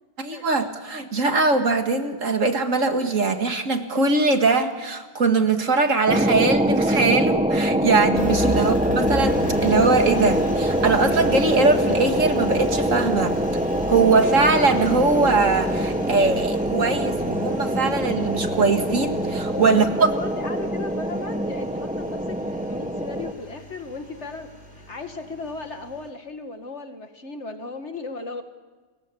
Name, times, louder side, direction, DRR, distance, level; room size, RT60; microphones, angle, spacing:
voice 1, 0.2-13.4 13.9-20.1, right 3 dB, 45° right, 6 dB, 2.3 m, -21 dB
sound 1, 6.1-23.3, right 1 dB, 5° right, 1.1 m, -24 dB
Engine, 8.1-26.1, equal, 20° left, 5.0 m, -36 dB
voice 2, 19.5-24.5 24.9-28.4, left 3 dB, 40° left, 7 dB, 2.1 m, -36 dB
29.5 x 22.5 x 7.0 m, 1.4 s
omnidirectional pair, 1.9 m